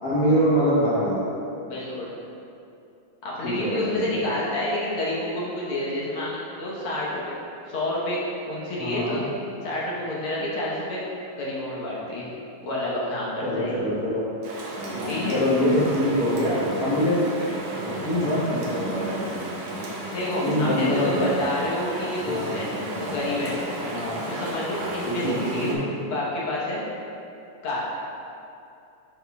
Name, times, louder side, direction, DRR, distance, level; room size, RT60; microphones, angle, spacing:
voice 1, 0.0-1.2 3.4-4.2 8.8-9.2 13.4-14.2 15.3-17.3 18.0-19.0 20.4-21.2 22.3-22.5 23.9-24.2 25.1-25.4, equal, 80° left, -12 dB, 0.8 m, -24 dB
voice 2, 1.6-2.2 3.2-7.3 7.7-8.2 8.5-9.2 9.6-11.0 11.3-12.3 12.6-13.8 15.1-15.4 20.1-22.7 23.0-23.6 24.3-26.8 27.6-27.8, left 1 dB, 60° left, -6 dB, 1.6 m, -29 dB
Chatter / Stream, 14.4-25.7, right 1 dB, 70° right, 2.1 m, -32 dB
10.5 x 4.4 x 2.3 m, 2.7 s
omnidirectional pair, 3.4 m